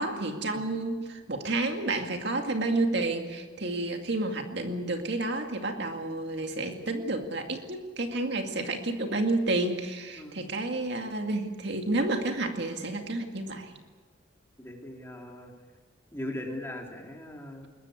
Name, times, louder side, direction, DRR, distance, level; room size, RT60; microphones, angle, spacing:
voice 1, 0.0-13.8, right 2 dB, 55° right, 4 dB, 2.2 m, -30 dB
voice 2, 10.2-10.5 14.6-15.5 16.1-17.7, left 1 dB, 10° left, 1 dB, 3.3 m, -39 dB
21.5 x 21.0 x 8.3 m, 1.3 s
head